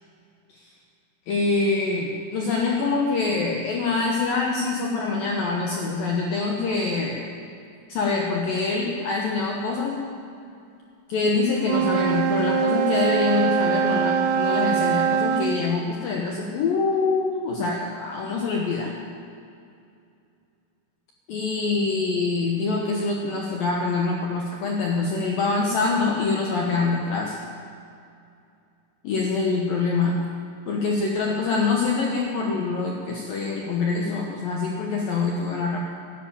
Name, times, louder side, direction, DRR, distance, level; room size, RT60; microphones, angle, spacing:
voice 1, 1.3-7.2 7.9-10.0 11.1-18.9 21.3-27.4 29.0-30.2 30.7-35.8, left 4 dB, 80° left, -1 dB, 2.1 m, -25 dB
Wind instrument woodwind instrument, 11.6-15.6, right 7 dB, 90° right, 3.6 m, -23 dB
13.5 x 11.5 x 8.9 m, 2.5 s
omnidirectional pair, 5.9 m